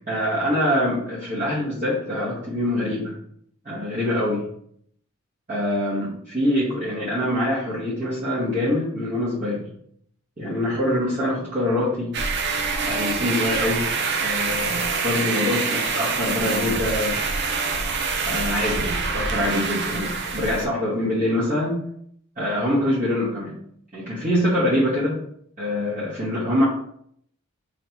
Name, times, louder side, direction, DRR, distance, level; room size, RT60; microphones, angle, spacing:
voice 1, 0.1-3.1 3.6-4.4 5.5-9.7 10.4-12.1 12.8-13.9 14.2-17.2 18.2-21.8 22.3-23.6 23.9-25.2 25.6-26.6, left 1 dB, 35° right, -11 dB, 1.3 m, -24 dB
sound 1, 12.1-20.7, right 4 dB, 55° right, 0.5 m, -25 dB
3.2 x 2.8 x 4.4 m, 0.67 s
head